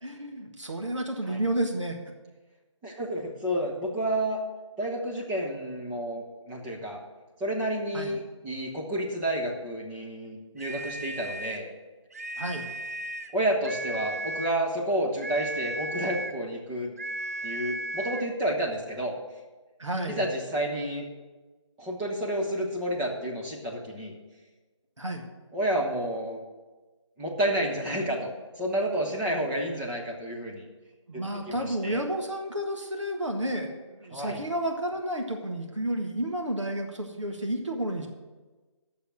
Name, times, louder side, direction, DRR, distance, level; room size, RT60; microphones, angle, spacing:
voice 1, 0.0-2.0 7.9-8.2 12.4-12.7 19.8-20.2 25.0-25.3 31.1-38.1, right 1 dB, 75° right, 2 dB, 1.6 m, -31 dB
voice 2, 2.8-4.4 4.8-7.0 7.4-11.7 13.3-16.9 17.4-19.1 20.1-21.0 21.8-24.1 25.5-26.4 27.2-28.3 28.6-30.7 31.1-32.0 34.1-34.4, right 1 dB, 5° right, -4 dB, 0.8 m, -30 dB
sound 1, 10.6-11.7 12.1-13.4 13.6-14.6 15.2-16.4 17.0-18.3, right 2 dB, 30° right, 0.4 m, -35 dB
9.8 x 7.0 x 7.7 m, 1.3 s
figure-of-eight pair, 155°, 16 cm